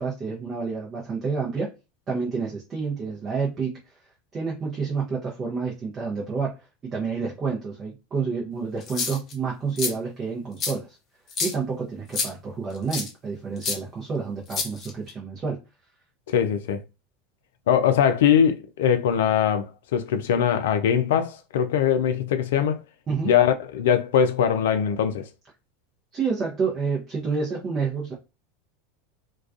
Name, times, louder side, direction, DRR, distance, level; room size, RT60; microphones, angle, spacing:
voice 1, 0.0-1.7 2.1-3.8 4.3-6.5 6.8-11.0 11.4-15.6 23.1-23.3 26.1-28.1, right 5 dB, 30° right, 0.7 m, -29 dB
sound 1, 8.8-9.3 9.8-9.9 10.6-10.7 11.3-11.5 12.1-12.3 12.9-13.1 13.6-13.8 14.5-15.1, left 4 dB, 40° left, 0.7 m, -28 dB
voice 2, 16.3-16.8 17.7-22.8 23.2-25.2, left 8 dB, 70° left, 0.4 m, -21 dB
2.3 x 2.2 x 2.4 m
hypercardioid pair, 85°, 0 cm